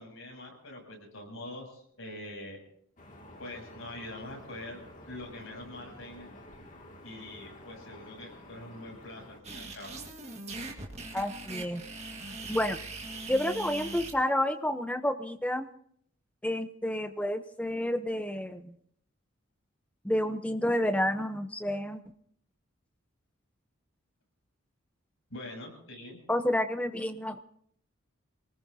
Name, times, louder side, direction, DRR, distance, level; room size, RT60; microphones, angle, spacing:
voice 1, 0.0-2.6 3.4-4.8 5.1-6.3 7.0-9.9 25.3-26.2, left 1 dB, 75° left, 0 dB, 7.5 m, -44 dB
sound 1, 3.0-9.4, left 1 dB, 40° left, 2.3 m, -50 dB
sound 2, 9.4-14.1, right 2 dB, 30° right, 1.9 m, -41 dB
voice 2, 11.1-11.8 12.5-12.8 13.3-15.7 16.4-18.7 20.0-22.0 26.3-27.4, left 1 dB, 5° left, 9 dB, 0.7 m, -30 dB
27.0 x 19.5 x 2.8 m, 0.66 s
head